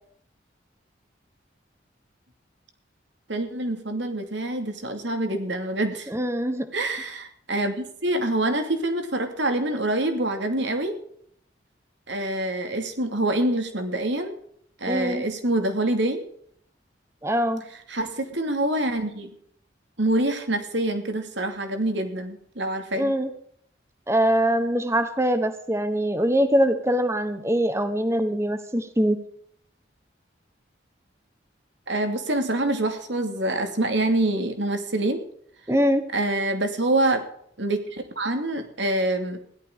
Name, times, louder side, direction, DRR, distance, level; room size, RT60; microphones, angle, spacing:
voice 1, 3.3-6.1 6.7-11.0 12.1-14.4 14.8-16.2 17.9-19.3 20.0-23.1 31.9-35.2 36.1-37.2 37.6-39.4, right 1 dB, 75° right, 6 dB, 2.7 m, -26 dB
voice 2, 6.1-6.7 14.9-15.2 17.2-17.6 23.0-23.3 24.1-29.2 35.7-36.0, equal, 15° right, 10 dB, 1.2 m, -23 dB
16.5 x 12.0 x 5.0 m, 0.65 s
head